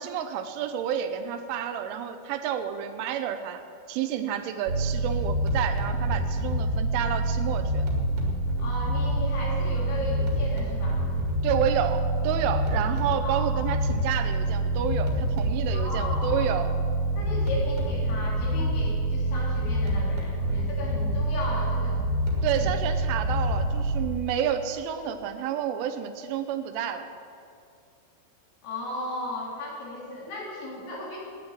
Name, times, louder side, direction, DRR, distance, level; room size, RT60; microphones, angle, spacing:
voice 1, 0.0-3.6 3.9-7.8 11.4-16.7 22.4-27.1, right 9 dB, 85° right, 8 dB, 3.2 m, -30 dB
sound 1, 4.7-24.1, right 1 dB, 50° right, 3.1 m, -26 dB
voice 2, 8.6-11.0 13.2-13.4 15.7-16.5 17.1-22.0 22.6-22.8 28.6-31.2, left 1 dB, 70° left, -5 dB, 5.5 m, -35 dB
13.0 x 9.7 x 8.7 m, 2.4 s
omnidirectional pair, 5.7 m